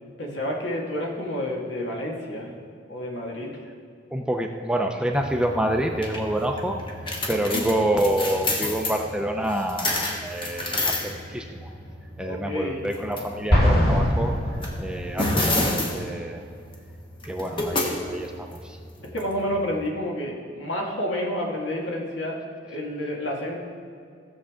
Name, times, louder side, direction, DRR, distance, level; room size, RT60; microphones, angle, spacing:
voice 1, 0.2-2.5 2.9-3.5 7.5-7.6 12.2-12.9 19.1-22.4 22.6-23.6, left 1 dB, 70° left, -2 dB, 2.0 m, -29 dB
voice 2, 4.1-6.8 7.3-11.7 12.2-14.3 14.8-15.5 15.9-16.4 17.2-18.8, right 1 dB, 5° right, 3 dB, 0.6 m, -27 dB
sound 1, 5.1-19.9, left 1 dB, 30° left, 1.1 m, -31 dB
Explosion, 13.5-15.3, equal, 55° left, 2.3 m, -21 dB
16.5 x 7.0 x 3.7 m, 2.3 s
head